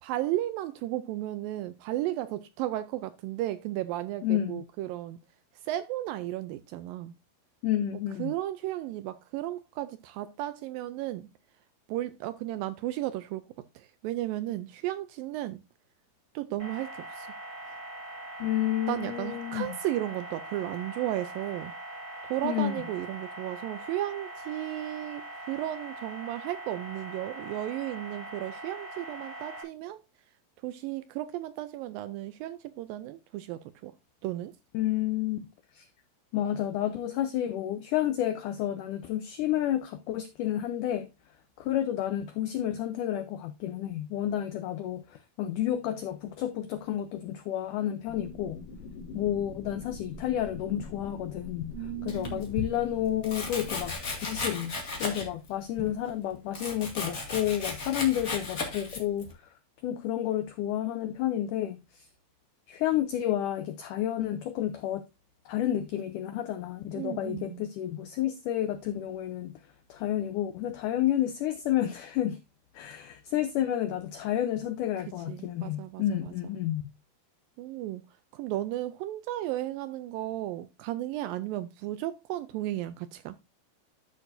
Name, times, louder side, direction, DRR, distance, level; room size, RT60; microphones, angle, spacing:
voice 1, 0.0-5.2 5.6-7.1 8.2-11.3 11.9-13.4 13.8-15.6 16.4-17.3 17.7-17.8 18.9-21.7 22.2-30.0 30.6-33.9 34.2-34.6 51.7-52.5 66.9-67.6 75.3-76.3 77.6-78.0 78.3-83.4, right 14 dB, 80° right, 2.1 m, -34 dB
voice 2, 4.2-4.7 7.6-8.3 18.4-19.8 22.4-22.8 34.7-35.5 35.7-35.9 36.3-41.1 41.6-48.6 49.1-51.7 52.0-54.0 54.2-59.3 59.8-62.1 62.7-65.0 65.5-69.6 69.9-72.4 72.7-76.8, left 12 dB, 90° left, 1.8 m, -30 dB
sound 1, 16.6-29.6, right 1 dB, 25° right, 3.8 m, -42 dB
sound 2, 48.1-53.9, left 4 dB, 70° left, 3.1 m, -44 dB
Domestic sounds home sounds, 52.1-52.7 53.2-55.5 55.8-59.3, left 3 dB, 35° left, 1.5 m, -35 dB
12.5 x 6.2 x 2.6 m
omnidirectional pair, 4.5 m